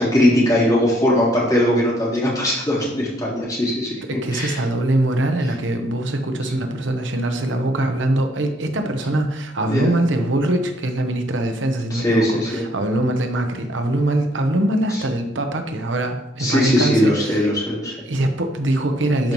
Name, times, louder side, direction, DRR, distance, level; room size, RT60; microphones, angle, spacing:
voice 1, 0.0-3.9 4.3-4.6 9.6-9.9 11.9-12.6 14.9-15.0 16.4-17.9 19.2-19.3, left 1 dB, 20° left, -7 dB, 3.3 m, -20 dB
voice 2, 4.1-17.5 18.1-19.3, right 1 dB, 90° right, 6 dB, 0.9 m, -22 dB
12.0 x 5.4 x 3.1 m, 0.86 s
head